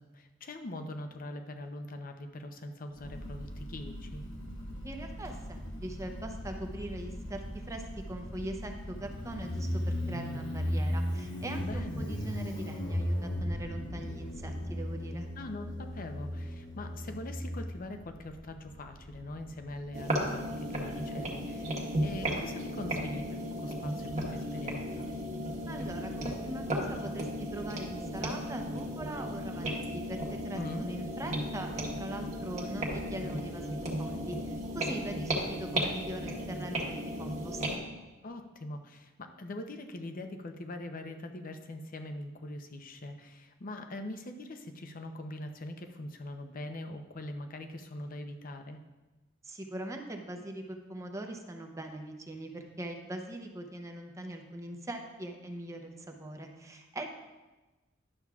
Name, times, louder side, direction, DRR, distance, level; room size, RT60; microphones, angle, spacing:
voice 1, 0.0-4.2 11.6-12.1 15.4-25.1 30.5-30.9 38.2-48.8, left 1 dB, 45° left, 6 dB, 0.7 m, -42 dB
Motorcycle, 3.0-20.2, equal, 70° left, 1.3 m, -37 dB
voice 2, 4.8-15.3 25.7-37.8 49.4-57.1, right 1 dB, 15° right, 3 dB, 0.7 m, -42 dB
sound 1, 19.9-37.8, equal, 35° right, 1.3 m, -35 dB
11.0 x 7.1 x 2.4 m, 1.2 s
head